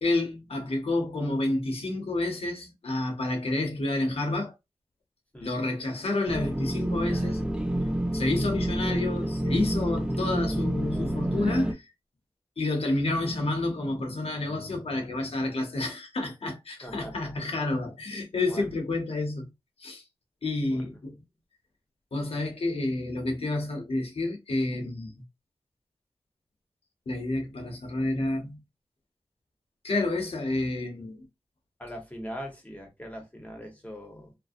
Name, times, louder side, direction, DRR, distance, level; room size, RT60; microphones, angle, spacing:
voice 1, 0.0-4.5 5.4-7.4 8.1-11.9 12.6-19.5 19.8-20.0 20.4-21.1 22.1-25.2 27.1-28.6 29.8-31.3, left 2 dB, 70° left, 0.8 m, -29 dB
sound 1, 6.3-11.7, right 1 dB, 10° right, 0.4 m, -28 dB
voice 2, 16.8-17.3 18.5-18.6 20.7-20.8 31.8-34.4, equal, 15° left, 0.9 m, -41 dB
2.5 x 2.0 x 2.4 m
wide cardioid pair, 65°, 10 cm